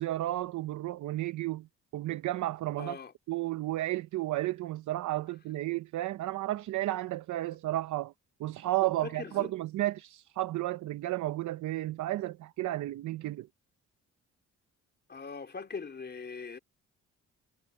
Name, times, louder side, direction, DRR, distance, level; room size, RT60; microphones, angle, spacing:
voice 1, 0.0-1.7 1.9-3.0 3.3-8.1 8.4-13.5, right 16 dB, 75° right, 0.8 m, -32 dB
voice 2, 2.8-3.1 8.8-9.5 15.1-16.6, left 5 dB, 35° left, 3.6 m, -41 dB
cardioid pair, 90°, 30 cm